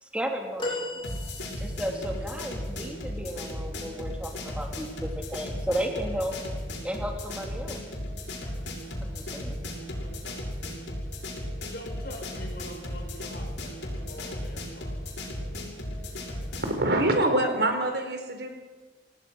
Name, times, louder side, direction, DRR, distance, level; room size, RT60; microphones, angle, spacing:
voice 1, 0.0-1.0 1.6-6.3 6.8-7.8 9.0-9.6, equal, 5° right, 2 dB, 3.1 m, -34 dB
sound 1, 0.6-2.0 4.4-4.6 5.9-6.0, left 1 dB, 30° left, 3.7 m, -35 dB
sound 2, 1.0-16.8, left 1 dB, 75° left, 6.5 m, -35 dB
voice 2, 11.6-15.0, left 1 dB, 60° left, 2 dB, 6.2 m, -43 dB
voice 3, 16.6-18.5, right 1 dB, 65° right, 5 dB, 4.4 m, -25 dB
27.0 x 18.0 x 6.3 m, 1.3 s
head